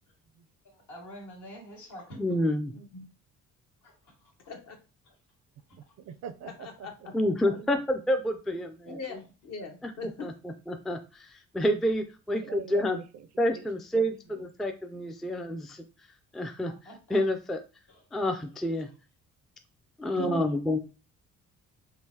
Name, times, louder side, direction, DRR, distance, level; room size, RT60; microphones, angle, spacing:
voice 1, 0.6-2.3 3.8-4.3 5.1-5.2 5.9-6.0 8.9-9.0 16.7-17.2 17.9-18.4 18.8-18.9, equal, 75° left, -2 dB, 1.8 m, -48 dB
voice 2, 2.2-2.7 7.1-9.0 10.0-13.0 13.4-15.8 16.3-16.7 17.1-17.6 18.1-18.9 20.0-20.8, equal, ahead, 6 dB, 0.3 m, -29 dB
voice 3, 2.7-3.1 4.5-4.8 6.4-6.9 8.8-10.3 20.1-20.5, left 4 dB, 55° left, 4 dB, 1.0 m, -41 dB
voice 4, 5.7-6.9 7.4-7.7 12.4-13.3 13.5-13.7 13.9-14.4 20.1-20.8, right 9 dB, 60° right, 13 dB, 0.5 m, -41 dB
3.7 x 2.7 x 2.7 m, 0.33 s
cardioid pair, 90°, 30 cm